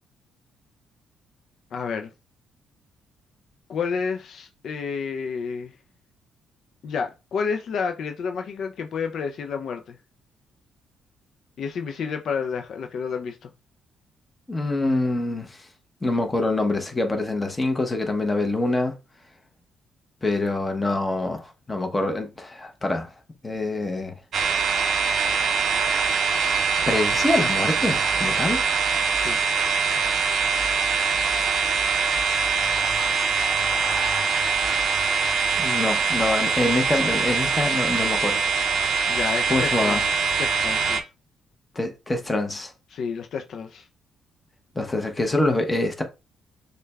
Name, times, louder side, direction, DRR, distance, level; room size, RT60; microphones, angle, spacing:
voice 1, 1.7-2.1 3.7-5.7 6.8-10.0 11.6-13.5 29.2-29.4 39.1-41.0 42.9-43.8, left 6 dB, 65° left, 0.4 m, -30 dB
voice 2, 14.5-15.7 16.0-18.9 20.2-23.1 23.4-24.1 26.9-28.6 33.7-38.4 39.5-40.0 41.8-42.7 44.7-46.0, left 2 dB, 20° left, 0.8 m, -25 dB
sound 1, 24.3-41.0, right 5 dB, 60° right, 0.5 m, -23 dB
6.5 x 2.2 x 2.3 m
cardioid pair, 90°, 0 cm